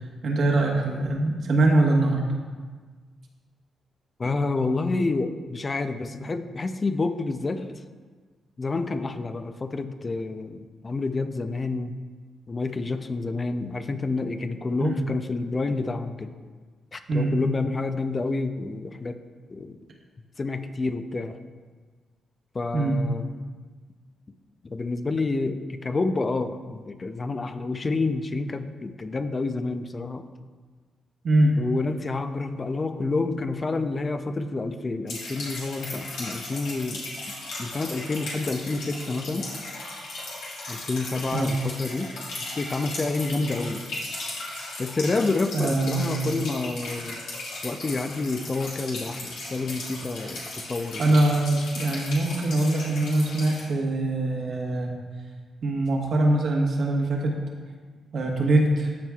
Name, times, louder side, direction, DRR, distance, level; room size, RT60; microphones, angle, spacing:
voice 1, 0.2-2.2 14.8-14.9 17.1-17.3 22.7-23.0 31.2-31.5 41.3-41.5 45.5-46.3 51.0-54.9 55.6-57.3 58.1-58.9, right 2 dB, 65° right, 0 dB, 1.2 m, -23 dB
voice 2, 4.2-7.8 8.6-12.0 12.5-16.3 16.9-19.2 19.5-19.8 20.4-21.4 22.5-23.3 24.6-30.3 31.6-37.1 37.6-39.5 40.7-42.2 42.4-43.9 44.8-47.2 47.6-51.0, left 3 dB, 35° left, 9 dB, 0.5 m, -29 dB
sound 1, 35.1-53.6, left 2 dB, 80° left, 1.7 m, -37 dB
13.0 x 4.6 x 2.3 m, 1.5 s
supercardioid pair, 55°, 0 cm